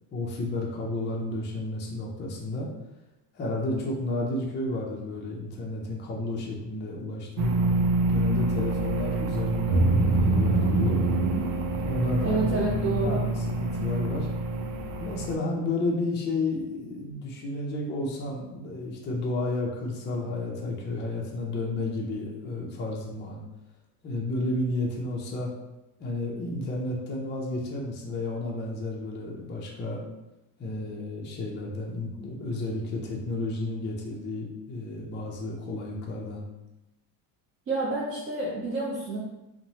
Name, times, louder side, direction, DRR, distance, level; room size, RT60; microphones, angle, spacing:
voice 1, 0.1-2.7 3.3-7.5 8.1-11.0 11.8-12.6 13.0-14.3 15.0-23.4 24.0-25.5 26.0-30.0 30.6-36.4, left 2 dB, 25° left, -2 dB, 0.5 m, -32 dB
sound 1, 7.4-15.4, right 2 dB, 85° right, 0.6 m, -25 dB
voice 2, 12.2-13.2 37.7-39.2, right 3 dB, 30° right, -7 dB, 0.6 m, -28 dB
3.0 x 2.1 x 2.7 m, 0.94 s
cardioid pair, 115°, 47 cm